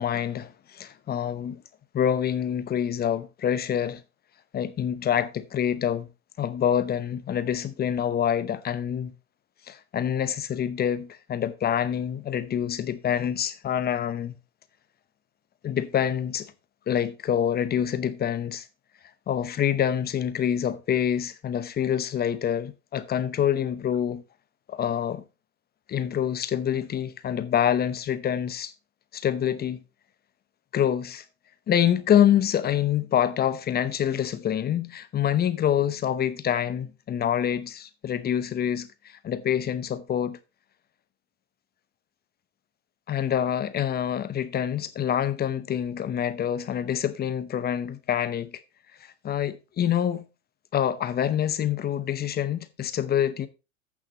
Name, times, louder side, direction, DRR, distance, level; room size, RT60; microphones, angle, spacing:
voice 1, 0.0-1.6 1.9-4.0 4.5-6.1 6.4-9.1 9.7-14.4 15.6-16.5 16.9-18.7 19.3-24.2 24.7-25.2 25.9-28.7 29.1-29.8 30.7-31.2 31.7-40.4 43.1-48.6 49.0-50.3 50.7-53.5, left 9 dB, 25° left, 0.9 m, -26 dB
14.5 x 6.0 x 3.0 m
hypercardioid pair, 105°, 42 cm